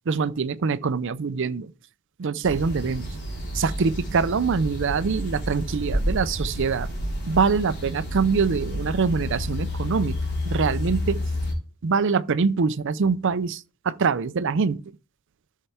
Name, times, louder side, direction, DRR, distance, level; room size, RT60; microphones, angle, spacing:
voice 1, 0.1-1.7 2.2-3.1 3.5-6.9 7.3-10.2 10.5-11.2 11.8-14.8, right 5 dB, 60° right, 0.5 m, -24 dB
sound 1, 2.4-11.5, left 1 dB, 50° left, 3.8 m, -30 dB
13.0 x 5.7 x 3.4 m
head